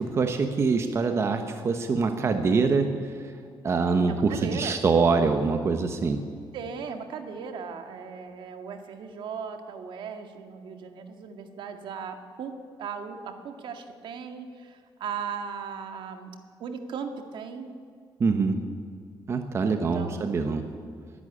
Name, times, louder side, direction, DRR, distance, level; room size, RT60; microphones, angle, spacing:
voice 1, 0.0-3.3 3.6-6.3 18.2-18.6 19.3-20.7, right 4 dB, 30° right, 6 dB, 1.2 m, -24 dB
voice 2, 4.1-4.8 6.5-16.3 16.6-17.7 19.7-20.3, right 6 dB, 70° right, 6 dB, 2.0 m, -37 dB
22.0 x 12.0 x 10.0 m, 2.2 s
cardioid pair, 170°, 9 cm